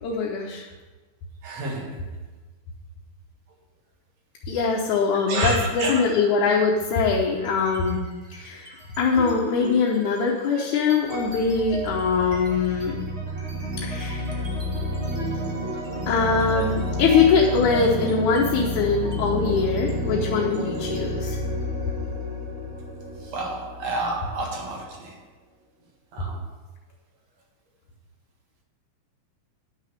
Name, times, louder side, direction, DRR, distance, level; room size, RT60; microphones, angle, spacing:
voice 1, 0.0-0.7 4.5-8.0 8.3-8.7 9.0-13.1 13.8-14.4 16.1-21.4, left 5 dB, 70° left, -2 dB, 2.4 m, -22 dB
voice 2, 1.4-2.1 5.3-6.0 19.0-19.2 23.2-25.2 26.1-26.5, right 2 dB, 60° right, 0 dB, 2.7 m, -30 dB
sound 1, 7.4-7.9 8.2-24.8, equal, 30° right, 1.2 m, -31 dB
10.0 x 6.4 x 6.4 m, 1.3 s
omnidirectional pair, 3.7 m